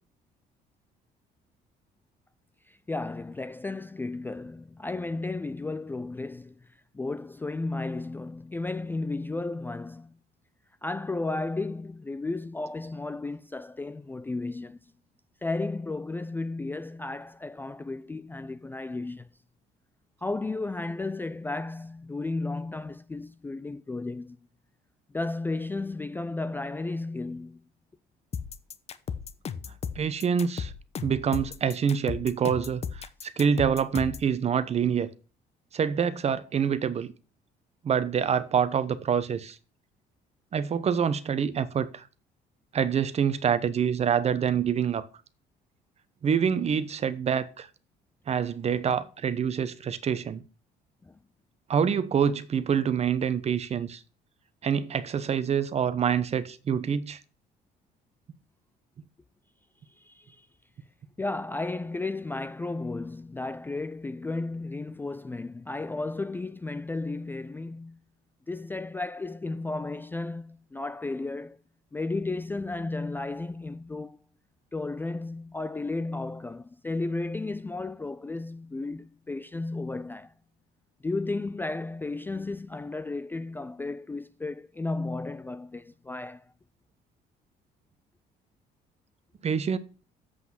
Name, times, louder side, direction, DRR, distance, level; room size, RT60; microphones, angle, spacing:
voice 1, 2.7-6.7 6.9-10.2 10.8-14.8 15.4-19.3 20.2-24.4 25.1-27.6 51.0-51.2 60.0-60.5 61.2-68.0 68.5-71.6 71.9-74.2 74.7-80.3 81.0-86.5, left 3 dB, 10° left, 0.3 m, -33 dB
sound 1, 28.3-34.3, left 6 dB, 40° left, 0.8 m, -35 dB
voice 2, 30.0-30.7 31.0-35.1 35.7-37.1 37.8-39.6 40.5-42.0 42.7-45.1 46.2-47.7 48.3-50.4 51.7-54.0 54.6-57.2 89.4-89.8, right 7 dB, 40° right, 0.9 m, -26 dB
7.8 x 6.0 x 5.9 m
cardioid pair, 110°, 17 cm